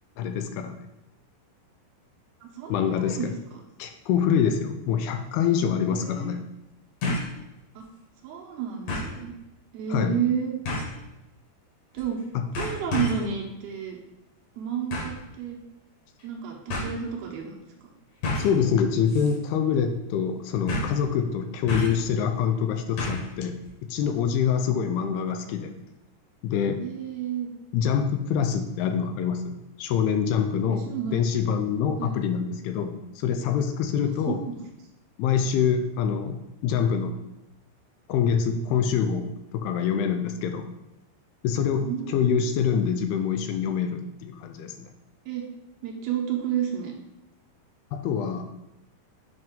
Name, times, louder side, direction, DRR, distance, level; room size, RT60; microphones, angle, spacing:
voice 1, 0.2-0.7 2.7-3.3 3.8-6.5 9.9-10.2 12.3-12.4 18.3-25.7 26.4-26.8 27.7-30.9 31.1-34.4 35.2-37.2 38.1-40.7 41.4-44.9 47.9-48.5, left 7 dB, 85° left, 7 dB, 2.5 m, -25 dB
voice 2, 2.4-3.6 5.9-6.4 7.8-7.9 8.2-9.3 9.7-10.6 11.9-12.2 12.6-14.0 14.6-15.6 16.2-17.5 24.7-24.9 26.8-27.5 30.7-31.3 32.0-32.2 34.0-34.6 41.7-42.4 45.3-45.4 45.8-46.9, right 8 dB, 75° right, 0 dB, 2.7 m, -31 dB
sound 1, 7.0-7.4 7.8-7.9 8.9-9.2 10.6-11.0 12.0-12.2 12.5-13.3 14.9-15.2 16.2-16.3 16.7-16.9 18.2-18.6 19.1-19.3 19.6-19.7 20.7-21.0 21.7-22.1 23.0-23.3 23.6-23.7, left 2 dB, 55° left, 3.2 m, -30 dB
7.9 x 5.3 x 3.7 m, 0.93 s
omnidirectional pair, 4.7 m